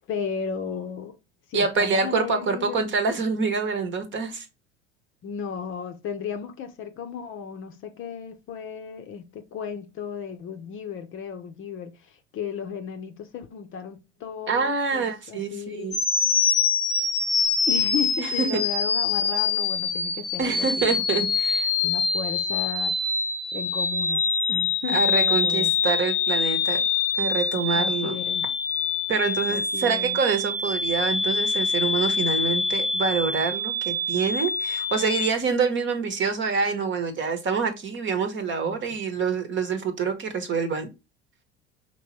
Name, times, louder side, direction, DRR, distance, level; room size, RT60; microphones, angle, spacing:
voice 1, 0.1-1.2 1.5-2.8 5.2-16.0 17.7-21.2 21.8-22.9 23.5-24.2 24.5-25.7 27.7-28.5 29.5-30.2 38.6-38.8, left 7 dB, 35° left, 0.7 m, -34 dB
voice 2, 1.5-4.5 14.5-16.0 18.2-18.6 20.4-21.7 24.9-26.8 27.2-28.1 29.1-40.9, right 5 dB, 35° right, 1.1 m, -26 dB
sound 1, 15.9-35.3, left 4 dB, 90° left, 1.0 m, -25 dB
5.1 x 3.0 x 3.0 m
figure-of-eight pair, 75°, 35 cm